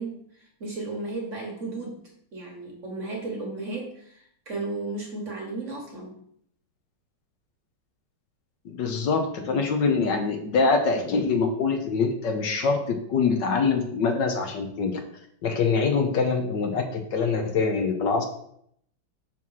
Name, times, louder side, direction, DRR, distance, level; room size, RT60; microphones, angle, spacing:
voice 1, 0.0-2.0 2.3-6.2, right 2 dB, 40° right, 0 dB, 1.4 m, -34 dB
voice 2, 8.6-15.0 15.4-18.2, left 4 dB, 65° left, 5 dB, 1.4 m, -24 dB
6.1 x 4.6 x 5.5 m, 0.69 s
omnidirectional pair, 2.2 m